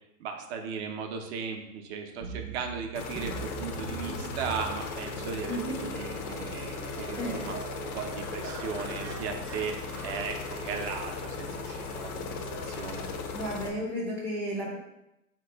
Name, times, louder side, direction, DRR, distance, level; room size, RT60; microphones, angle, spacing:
voice 1, 0.2-7.6 7.9-9.8 10.0-12.4 12.6-13.0, right 6 dB, 50° right, 4 dB, 0.7 m, -37 dB
sound 1, 2.2-14.0, right 6 dB, 80° right, 0.7 m, -43 dB
sound 2, 2.9-13.7, left 4 dB, 75° left, 0.8 m, -37 dB
voice 2, 7.1-7.5 13.3-14.8, equal, 5° left, -7 dB, 0.4 m, -33 dB
4.0 x 3.0 x 3.4 m, 0.88 s
hypercardioid pair, 130°, 44 cm